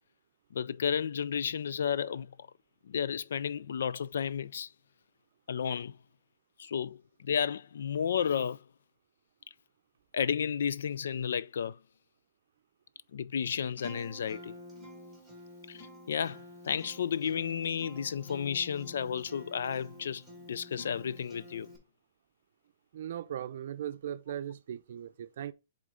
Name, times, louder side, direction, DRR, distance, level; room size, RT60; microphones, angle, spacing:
voice 1, 0.5-2.3 2.8-4.7 5.5-6.0 6.6-8.6 10.1-11.8 13.1-14.5 15.7-21.7, left 7 dB, 75° left, 0.3 m, -32 dB
Acoustic guitar, 13.8-21.8, equal, 5° left, 1.7 m, -49 dB
voice 2, 22.9-25.5, right 10 dB, 55° right, 0.5 m, -38 dB
7.5 x 3.7 x 3.8 m
hypercardioid pair, 165°, 0 cm